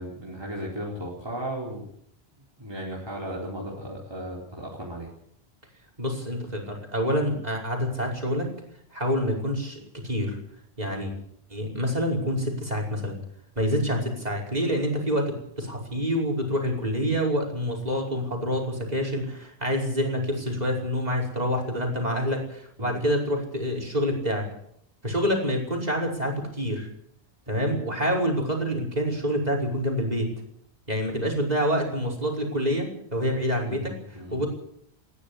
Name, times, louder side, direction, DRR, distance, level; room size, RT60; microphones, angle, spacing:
voice 1, 0.0-1.8 2.6-5.1 22.8-23.1 27.5-27.8 33.6-34.4, equal, 25° right, -3 dB, 4.3 m, -36 dB
voice 2, 6.0-8.5 8.9-10.4 10.8-11.1 11.5-13.2 13.6-24.5 25.0-26.9 27.5-30.3 30.9-33.9 34.3-34.5, equal, 40° right, 2 dB, 5.6 m, -27 dB
21.0 x 15.0 x 8.3 m, 0.70 s
omnidirectional pair, 1.1 m